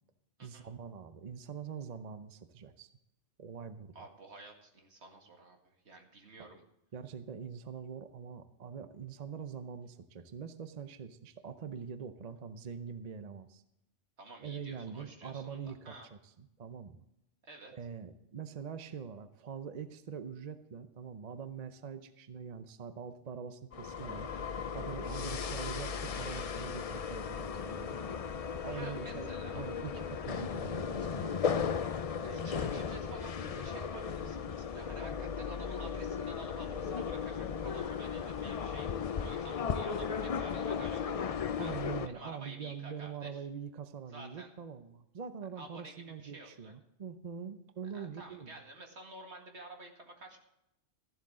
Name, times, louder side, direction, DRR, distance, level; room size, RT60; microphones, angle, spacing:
voice 1, 0.4-2.9 3.4-3.9 6.4-6.5 6.9-13.6 14.4-17.0 17.7-24.3 24.7-28.0 28.6-31.4 41.5-48.5, right 7 dB, 45° right, 10 dB, 0.7 m, -44 dB
voice 2, 3.9-6.6 14.2-16.1 17.4-17.7 25.4-25.5 28.7-29.6 31.9-38.9 39.2-41.0 41.6-41.7 42.1-43.5 44.1-44.5 45.6-45.9 46.2-46.7 47.9-50.4, right 2 dB, 65° right, 2 dB, 2.2 m, -51 dB
sound 1, 23.7-42.1, left 6 dB, 50° left, 0.4 m, -36 dB
13.5 x 11.5 x 3.7 m, 0.84 s
omnidirectional pair, 1.2 m